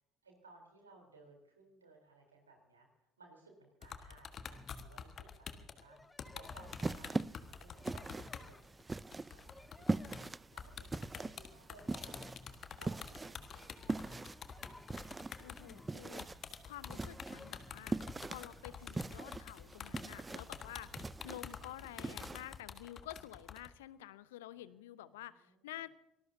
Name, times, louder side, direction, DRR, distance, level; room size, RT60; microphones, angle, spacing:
voice 1, 0.2-2.9 3.2-7.2 7.6-9.0 9.3-9.4 9.7-14.4 24.5-24.7 25.0-25.7, right 3 dB, 85° right, 1 dB, 3.6 m, -61 dB
sound 1, 3.8-8.5 8.8-8.9 9.1-23.7, left 7 dB, 45° left, 1.4 m, -48 dB
sound 2, 4.4-5.0 5.8-7.0 7.8-9.0 9.4-10.4 11.0-11.4 11.7-12.7 13.4-16.0 16.8-17.9, left 2 dB, 15° left, 0.9 m, -57 dB
sound 3, 6.4-22.6, right 3 dB, 20° right, 0.4 m, -42 dB
voice 2, 10.0-10.3 15.4-16.3 16.7-18.0 18.2-20.9 21.2-25.9, left 14 dB, 75° left, 18 dB, 0.6 m, -50 dB
25.5 x 19.0 x 2.7 m, 0.96 s
figure-of-eight pair, 55°, 0 cm